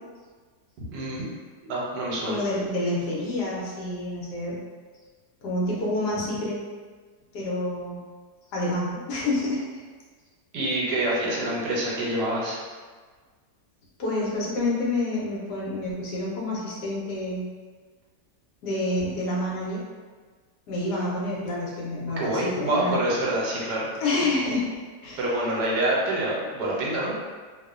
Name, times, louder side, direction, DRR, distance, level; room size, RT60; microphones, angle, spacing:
voice 1, 0.9-1.2 1.7-2.4 10.5-12.6 22.2-23.9 25.2-27.1, right 1 dB, 80° right, -4 dB, 1.2 m, -26 dB
voice 2, 2.3-4.6 5.4-6.6 7.3-8.0 8.5-9.6 14.0-17.5 18.6-19.8 20.7-23.0 24.0-24.7 25.0-25.2, left 2 dB, 80° left, -5 dB, 1.2 m, -28 dB
2.9 x 2.1 x 2.4 m, 1.5 s
omnidirectional pair, 1.8 m